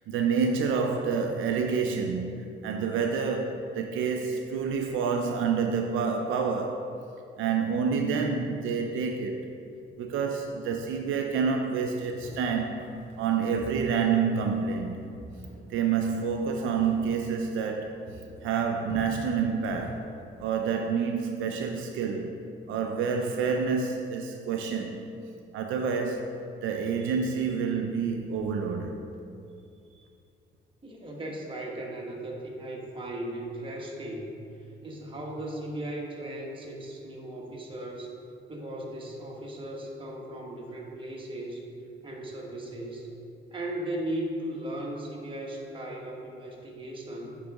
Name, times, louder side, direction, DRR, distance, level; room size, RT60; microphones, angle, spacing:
voice 1, 0.1-6.9 7.4-9.5 10.0-12.8 13.2-15.0 15.7-17.9 18.4-20.1 20.4-22.4 22.7-25.0 25.5-26.3 26.6-28.9, right 5 dB, 85° right, 3 dB, 0.5 m, -28 dB
sound 1, 12.1-17.8 18.1-21.0, left 1 dB, 70° left, 1.3 m, -47 dB
voice 2, 30.8-38.1 38.5-41.7 42.0-43.1 43.5-47.3, right 1 dB, 25° right, -2 dB, 1.3 m, -37 dB
8.9 x 4.0 x 3.5 m, 2.5 s
cardioid pair, 90°, 20 cm